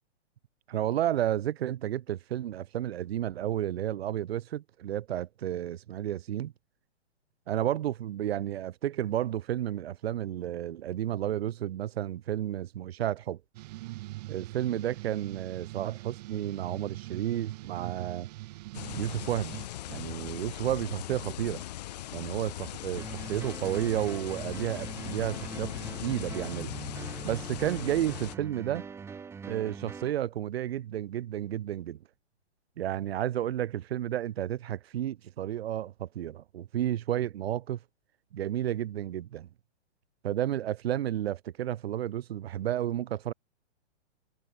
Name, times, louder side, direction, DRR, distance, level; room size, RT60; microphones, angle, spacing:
voice 1, 0.7-6.5 7.5-13.4 14.3-18.3 18.9-19.6 19.9-21.6 22.1-25.7 26.0-26.7 27.2-28.9 29.5-32.0 32.8-37.8 38.3-39.5 40.2-43.3, right 12 dB, 60° right, 1.4 m, -32 dB
sound 1, 13.5-19.7, right 19 dB, 35° right, 1.2 m, -42 dB
sound 2, 18.7-28.4, left 14 dB, 35° left, 0.5 m, -39 dB
sound 3, 23.0-30.1, right 6 dB, 5° right, 1.0 m, -43 dB
hypercardioid pair, 150°, 35 cm